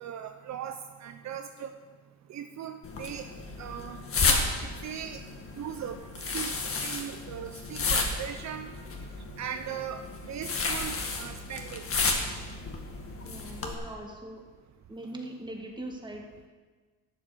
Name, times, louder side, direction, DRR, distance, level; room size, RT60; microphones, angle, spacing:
voice 1, 0.0-1.7 2.3-3.3 3.6-5.2 5.6-6.0 6.3-6.6 6.8-8.7 9.4-11.9, right 9 dB, 65° right, 7 dB, 0.7 m, -39 dB
sound 1, 2.8-13.7, left 4 dB, 45° left, 1.9 m, -32 dB
voice 2, 13.2-14.4 14.9-16.5, right 1 dB, 15° right, 1 dB, 2.1 m, -41 dB
12.0 x 7.2 x 6.8 m, 1.4 s
cardioid pair, 90°, 30 cm